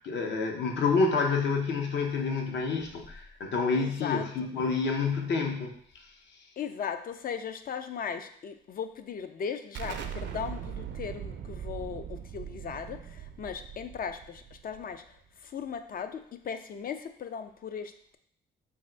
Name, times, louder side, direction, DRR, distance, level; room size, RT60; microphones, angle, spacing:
voice 1, 0.0-5.8, left 4 dB, 65° left, 2 dB, 0.8 m, -28 dB
voice 2, 3.7-4.3 6.6-15.0 15.4-18.2, left 7 dB, 45° left, 9 dB, 0.4 m, -37 dB
Explosion, 9.7-15.2, right 8 dB, 65° right, 0.5 m, -40 dB
3.5 x 2.5 x 4.3 m, 0.63 s
cardioid pair, 90°, 20 cm